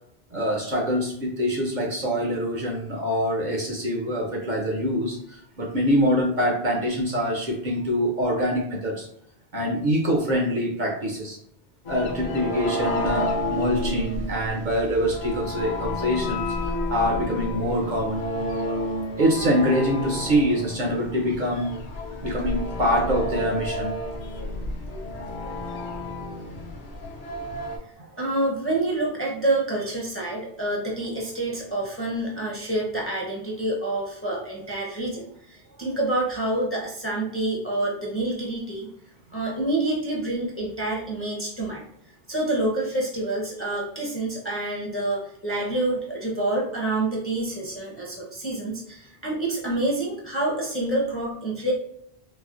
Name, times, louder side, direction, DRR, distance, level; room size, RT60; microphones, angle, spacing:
voice 1, 0.3-9.1 9.5-11.4 11.9-16.4 16.9-18.2 19.2-21.7 22.2-23.9, equal, 55° right, 0 dB, 0.7 m, -24 dB
sound 1, 11.9-27.8, left 1 dB, 55° left, 0.7 m, -30 dB
voice 2, 27.6-38.9 39.3-41.8 42.3-51.7, right 2 dB, 15° left, -3 dB, 0.6 m, -27 dB
4.1 x 2.0 x 2.4 m, 0.73 s
omnidirectional pair, 1.1 m